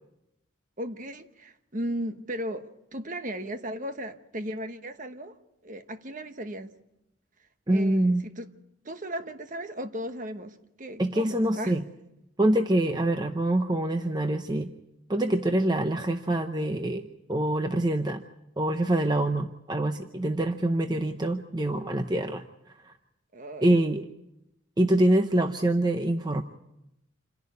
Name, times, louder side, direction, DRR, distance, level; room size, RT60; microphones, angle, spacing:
voice 1, 0.8-6.7 7.7-8.5 8.8-11.8 23.3-23.8, right 1 dB, 40° right, 1.1 m, -36 dB
voice 2, 7.7-8.2 11.0-11.8 12.4-14.7 15.1-18.2 18.6-22.4 22.8-22.9 23.6-24.1 24.8-26.4, right 1 dB, 20° right, 0.7 m, -25 dB
27.5 x 11.0 x 9.5 m
head